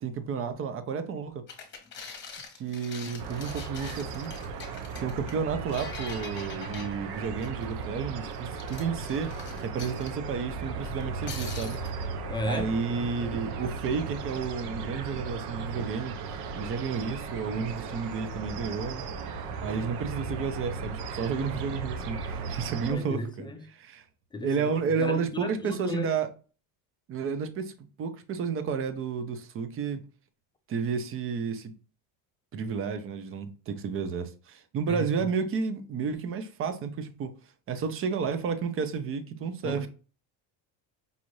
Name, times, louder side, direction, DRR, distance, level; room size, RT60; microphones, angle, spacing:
voice 1, 0.0-1.4 2.6-4.3 5.0-9.3 9.6-11.8 12.5-16.1 16.6-19.0 19.6-24.0 24.4-26.3 27.1-30.0 30.7-31.7 32.5-37.4 37.7-39.9, right 5 dB, 35° right, 0.6 m, -31 dB
sound 1, 1.5-7.8 8.3-10.1 10.8-11.9, left 5 dB, 30° left, 1.1 m, -44 dB
sound 2, 3.2-22.9, right 4 dB, 70° right, 0.7 m, -36 dB
voice 2, 12.3-12.7 22.8-23.6 24.3-24.7 25.0-26.1 34.9-35.1 39.6-39.9, left 2 dB, 15° left, 0.3 m, -34 dB
5.4 x 2.5 x 3.1 m
cardioid pair, 140°, 40 cm